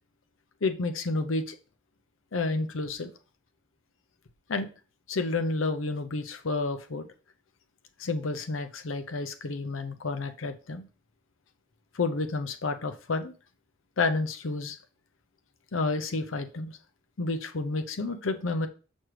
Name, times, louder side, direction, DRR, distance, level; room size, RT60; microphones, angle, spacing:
voice 1, 0.6-1.6 2.3-3.1 4.5-4.7 5.1-7.1 8.0-10.8 11.9-13.3 14.0-14.8 15.7-16.8 17.2-18.7, left 3 dB, 85° left, 0.7 m, -30 dB
6.2 x 6.1 x 3.3 m
head